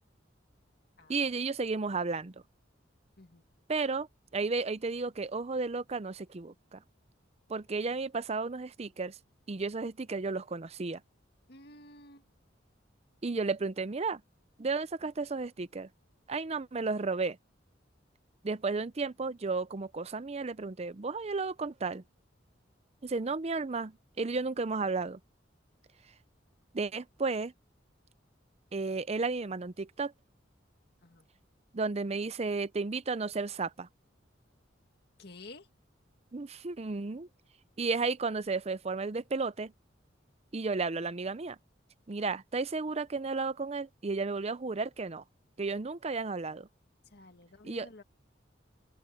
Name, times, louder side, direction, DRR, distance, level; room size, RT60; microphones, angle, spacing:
voice 1, 1.1-2.3 3.7-4.1 4.3-6.8 7.5-9.2 9.5-11.0 13.2-14.2 14.6-15.9 16.3-17.4 18.4-22.0 23.0-25.2 26.7-27.5 28.7-30.1 31.7-33.9 36.3-37.3 37.8-39.7 40.5-41.6 42.1-45.2 45.6-46.7 47.6-47.9, right 4 dB, 35° right, 0.6 m, -33 dB
voice 2, 11.5-12.2 31.0-31.2 35.2-35.7 47.1-48.0, left 2 dB, 60° left, 2.1 m, -51 dB
open air
head